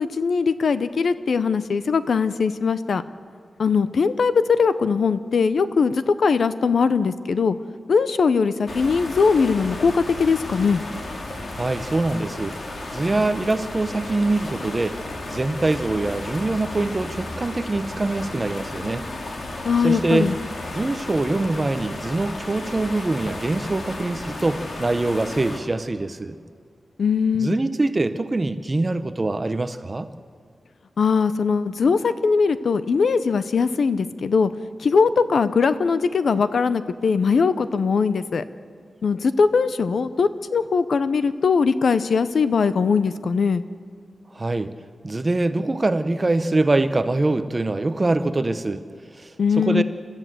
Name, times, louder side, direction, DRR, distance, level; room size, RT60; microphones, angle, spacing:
voice 1, 0.0-3.0 3.6-7.6 7.9-10.8 19.7-20.4 27.0-27.6 31.0-34.5 34.8-38.4 39.0-43.6 49.4-49.8, left 5 dB, 60° left, 13 dB, 0.7 m, -20 dB
sound 1, 8.7-25.6, left 2 dB, 40° left, 2.3 m, -34 dB
voice 2, 11.5-12.6 12.9-15.0 15.3-19.0 19.8-20.3 20.7-26.4 27.4-30.1 44.3-44.7 45.0-48.8 49.2-49.3 49.6-49.8, right 2 dB, 20° right, 11 dB, 0.7 m, -23 dB
29.5 x 13.5 x 7.8 m, 2.1 s
wide cardioid pair, 175°, 0 cm